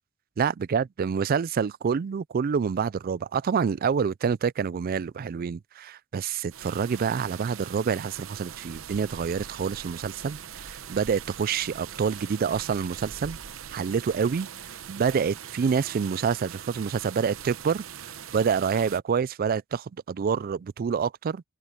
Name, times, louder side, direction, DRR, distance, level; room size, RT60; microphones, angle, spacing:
voice 1, 0.4-13.4 13.7-14.5 14.9-17.8 18.3-21.4, right 6 dB, 45° right, 0.3 m, -27 dB
sound 1, 6.5-19.0, right 8 dB, 80° right, 0.8 m, -42 dB
open air
head